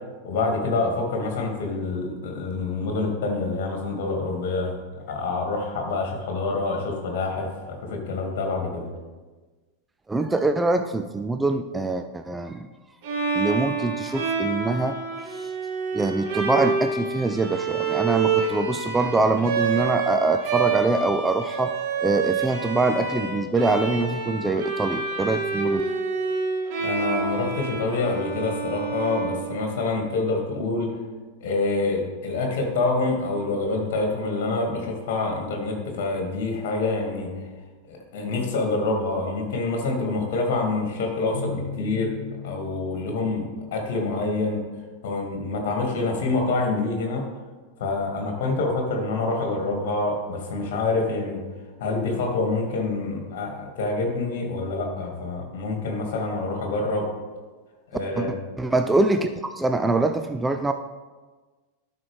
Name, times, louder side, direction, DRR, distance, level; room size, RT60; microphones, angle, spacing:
voice 1, 0.2-4.7 5.1-8.9 26.8-30.9 31.4-37.3 37.9-42.1 42.4-43.5 43.7-44.6 45.0-47.2 47.8-51.4 51.8-57.1 57.9-58.3, left 3 dB, 50° left, 2 dB, 1.9 m, -26 dB
voice 2, 10.1-12.7 13.3-15.0 15.3-15.5 15.9-21.7 22.0-25.8 58.2-58.3 58.6-59.3 59.6-60.7, right 3 dB, 10° right, 7 dB, 0.4 m, -24 dB
Bowed string instrument, 13.0-29.9, right 4 dB, 50° right, 1.9 m, -28 dB
Keyboard (musical), 41.3-44.2, left 4 dB, 85° left, 0.6 m, -37 dB
12.0 x 5.7 x 3.3 m, 1.3 s
figure-of-eight pair, 90°, 0 cm